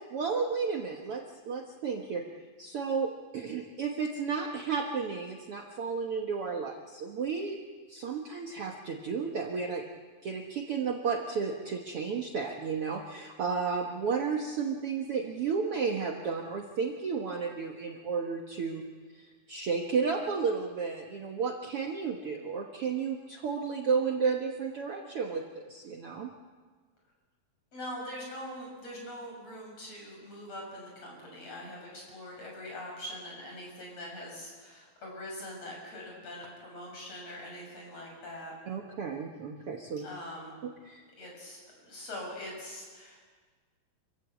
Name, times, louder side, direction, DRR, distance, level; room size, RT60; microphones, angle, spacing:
voice 1, 0.1-2.2 2.6-7.6 7.9-9.8 10.2-18.8 19.1-26.3 38.7-40.0 40.8-41.0, right 5 dB, 55° right, 2 dB, 1.8 m, -32 dB
voice 2, 27.7-38.5 40.0-40.6 41.2-43.2, left 1 dB, 45° left, -1 dB, 8.1 m, -43 dB
27.0 x 16.0 x 8.3 m, 1.5 s
omnidirectional pair, 4.0 m